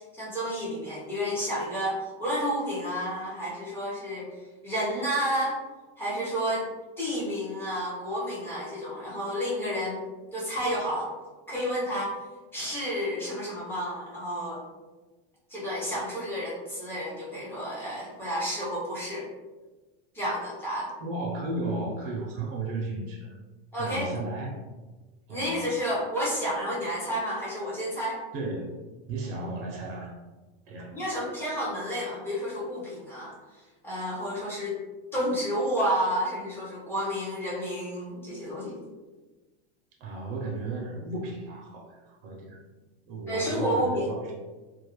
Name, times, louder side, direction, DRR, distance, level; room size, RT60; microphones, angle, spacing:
voice 1, 0.1-4.3 4.6-5.6 6.0-6.7 7.0-10.0 10.3-11.1 11.5-12.1 12.5-14.6 15.5-19.3 20.1-20.9 23.7-24.1 25.3-28.2 30.9-33.3 33.8-34.8 35.1-38.8 43.3-44.1, equal, 10° left, -7 dB, 0.4 m, -30 dB
voice 2, 21.0-23.4 23.8-24.6 25.3-25.7 28.3-30.2 30.7-31.0 40.0-42.6 43.1-44.3, right 2 dB, 65° right, -1 dB, 0.5 m, -34 dB
2.2 x 2.0 x 2.9 m, 1.2 s
supercardioid pair, 160°, 31 cm